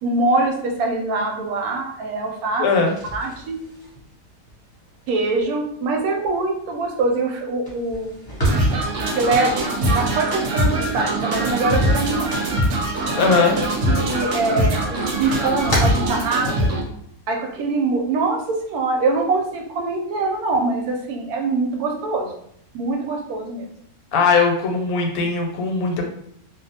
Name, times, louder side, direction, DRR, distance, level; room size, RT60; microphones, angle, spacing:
voice 1, 0.0-2.7 3.1-3.6 5.1-8.3 9.0-12.3 13.8-16.7 17.3-22.3 22.7-23.7, right 3 dB, 85° right, 2 dB, 1.1 m, -23 dB
voice 2, 2.6-2.9 13.1-13.6 24.1-26.0, left 4 dB, 90° left, 2 dB, 1.1 m, -19 dB
sound 1, 2.8-12.7 13.0-13.9 14.3-16.9, right 1 dB, 20° left, 0.7 m, -33 dB
sound 2, 8.4-16.8, right 1 dB, 70° right, 0.8 m, -22 dB
2.5 x 2.1 x 2.7 m, 0.69 s
omnidirectional pair, 1.5 m